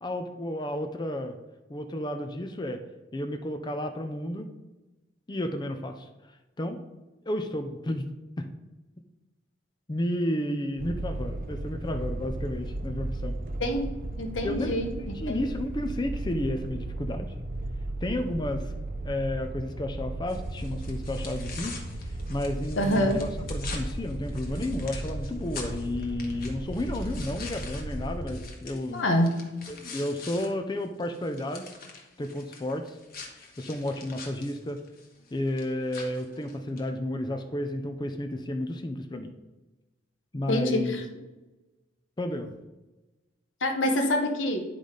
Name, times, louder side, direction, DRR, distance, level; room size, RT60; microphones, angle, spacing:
voice 1, 0.0-1.4 1.7-2.8 3.1-4.5 5.3-6.8 7.2-8.1 8.4-8.5 9.9-13.4 14.4-17.3 18.0-18.7 19.0-29.0 29.7-33.0 33.3-34.8 35.3-39.3 40.3-41.0 42.2-42.5, left 1 dB, 25° left, 6 dB, 0.5 m, -32 dB
sound 1, 10.8-28.5, right 1 dB, 50° right, 0.7 m, -35 dB
voice 2, 14.2-15.5 22.8-23.2 28.9-29.3 40.5-41.0 43.6-44.6, left 1 dB, 85° left, 4 dB, 1.2 m, -26 dB
sound 2, 20.3-30.5 30.8-36.9, left 4 dB, 50° left, 1.4 m, -45 dB
10.0 x 3.9 x 5.0 m, 1.1 s
head